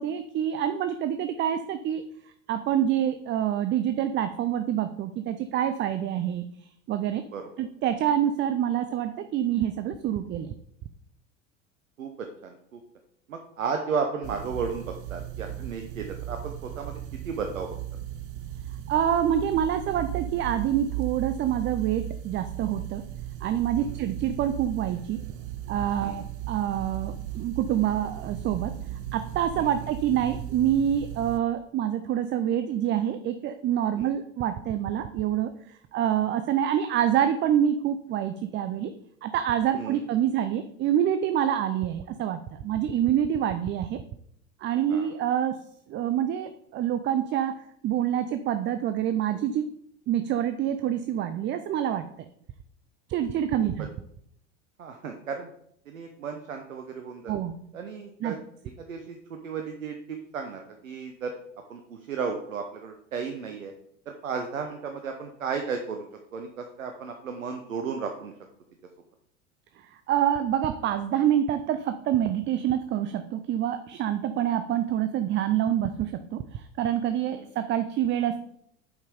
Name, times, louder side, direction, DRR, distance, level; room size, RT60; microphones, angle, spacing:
voice 1, 0.0-2.0 2.5-7.2 7.6-10.5 18.9-23.1 23.4-25.2 25.7-28.7 29.1-38.9 39.2-44.0 44.6-45.6 45.9-47.5 47.8-49.7 50.1-52.1 53.1-53.9 57.3-57.6 58.2-58.4 69.8-78.4, right 10 dB, 30° right, 10 dB, 0.5 m, -26 dB
voice 2, 12.0-12.8 13.3-16.9 17.2-17.7 23.8-23.9 26.0-26.3 29.6-29.7 34.0-34.1 39.7-40.0 44.9-45.1 53.6-53.7 54.8-55.5 55.9-57.3 57.7-58.4 58.8-61.3 61.7-63.7 64.1-66.0 66.3-68.3 77.3-77.5, right 5 dB, 80° right, 4 dB, 1.0 m, -34 dB
sound 1, 14.2-31.4, right 12 dB, 55° right, 0.8 m, -37 dB
8.0 x 5.4 x 5.0 m, 0.71 s
figure-of-eight pair, 80°, 39 cm